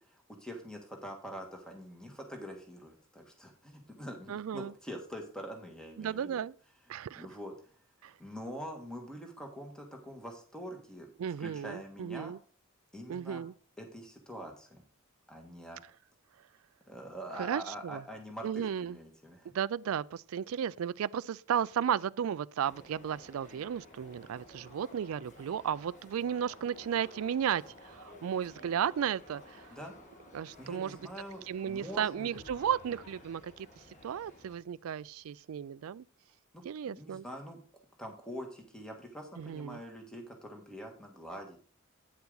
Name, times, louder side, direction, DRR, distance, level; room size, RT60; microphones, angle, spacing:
voice 1, 0.1-6.4 7.1-7.5 8.0-11.1 11.4-12.3 12.9-13.4 13.8-14.8 15.3-15.8 16.9-19.5 29.7-29.9 30.6-32.3 36.5-37.6 38.0-41.6, equal, 5° left, 1.6 m, -45 dB
voice 2, 4.3-4.7 6.0-6.5 6.9-7.3 8.0-8.1 11.2-12.4 13.1-13.5 17.3-18.0 18.4-19.0 19.4-29.7 30.3-31.0 31.5-33.7 34.0-36.0 36.6-37.2 39.4-39.8, right 8 dB, 70° right, 0.3 m, -34 dB
sound 1, 22.6-34.5, left 1 dB, 35° left, 1.9 m, -54 dB
sound 2, 32.3-35.6, left 2 dB, 65° left, 1.0 m, -61 dB
9.4 x 7.0 x 4.0 m
head